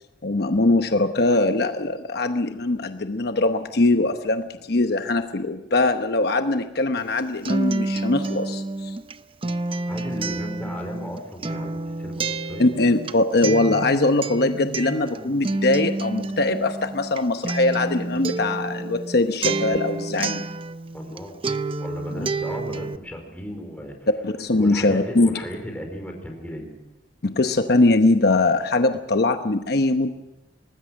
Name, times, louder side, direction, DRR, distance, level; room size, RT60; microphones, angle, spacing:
voice 1, 0.2-9.0 12.6-20.4 22.1-22.3 24.2-25.3 27.2-30.1, left 2 dB, 60° left, 7 dB, 0.9 m, -21 dB
Acoustic guitar, 7.0-21.2 21.4-23.0, right 3 dB, 30° right, 0.6 m, -29 dB
voice 2, 9.9-12.7 20.9-21.4 21.8-24.1 24.5-26.7, equal, 10° left, 2 dB, 4.5 m, -35 dB
24.5 x 19.5 x 6.4 m, 0.99 s
head